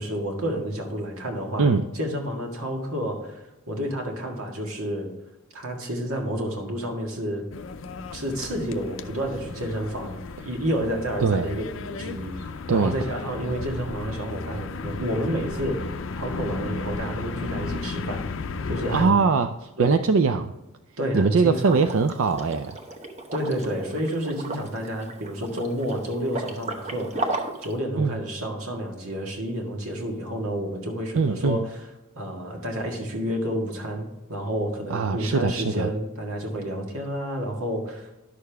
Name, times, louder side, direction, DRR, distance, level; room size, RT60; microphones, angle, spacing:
voice 1, 0.0-5.1 5.5-7.5 8.1-10.2 10.4-18.2 18.7-19.2 19.8-20.0 21.0-21.7 23.3-31.8 32.2-38.2, equal, 85° right, 1 dB, 1.8 m, -30 dB
sound 1, 7.5-19.1, left 4 dB, 65° left, 0.5 m, -34 dB
voice 2, 11.2-11.5 12.7-12.9 18.9-20.5 21.1-22.8 28.0-28.2 31.1-31.6 34.9-35.9, right 4 dB, 70° right, 8 dB, 0.4 m, -22 dB
Liquid, 21.6-27.7, right 2 dB, 30° right, 0.9 m, -35 dB
11.0 x 6.7 x 3.4 m, 0.96 s
head